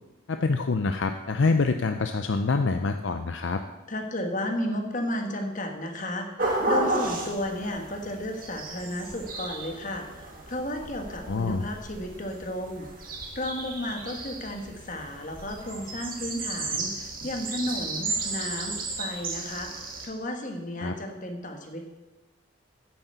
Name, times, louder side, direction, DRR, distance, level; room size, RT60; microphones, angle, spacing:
voice 1, 0.3-3.6 11.3-11.7 20.8-20.9, left 3 dB, 65° left, 7 dB, 0.5 m, -26 dB
voice 2, 3.9-6.3 6.7-12.9 13.3-21.9, left 1 dB, 40° left, 4 dB, 1.5 m, -33 dB
sound 1, 6.4-20.1, right 2 dB, 45° right, 2.1 m, -33 dB
9.8 x 8.7 x 6.8 m, 1.1 s
head